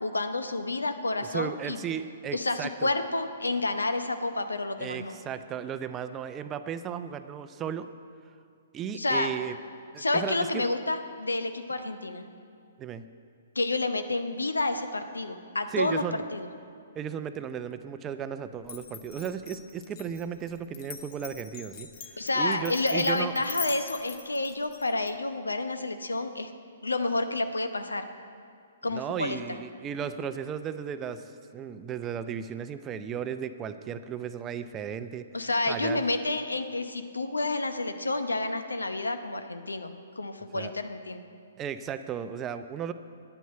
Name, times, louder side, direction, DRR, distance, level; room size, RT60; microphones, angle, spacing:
voice 1, 0.0-1.8 2.3-5.2 8.9-9.3 10.0-12.2 13.5-16.0 16.3-16.5 22.2-26.5 26.8-28.0 28.8-29.6 35.3-41.2, left 2 dB, 85° left, 9 dB, 0.8 m, -29 dB
voice 2, 1.2-2.9 4.8-7.9 8.7-9.6 9.9-10.6 12.8-13.0 15.7-16.2 16.9-21.9 22.2-23.3 28.9-31.2 31.5-36.1 40.5-40.7 41.6-42.9, right 8 dB, 20° right, 11 dB, 0.5 m, -35 dB
Glass, 18.6-25.1, left 7 dB, 40° left, 1.0 m, -42 dB
9.2 x 9.2 x 7.9 m, 2.3 s
figure-of-eight pair, 125°, 0 cm